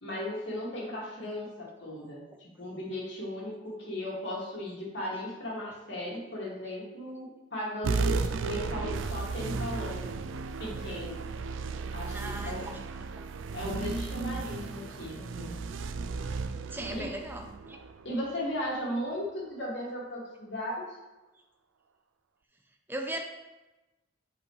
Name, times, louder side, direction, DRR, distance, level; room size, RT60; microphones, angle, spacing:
voice 1, 0.0-10.2 10.6-11.2 11.9-12.7 13.5-15.6 16.9-17.1 18.0-21.0, left 1 dB, 65° left, -5 dB, 2.3 m, -36 dB
sound 1, 7.8-18.7, right 4 dB, 80° right, 0.4 m, -34 dB
voice 2, 12.1-12.8 16.7-17.8 22.9-23.2, right 1 dB, 10° right, 2 dB, 0.6 m, -37 dB
8.1 x 4.9 x 3.2 m, 1.1 s
head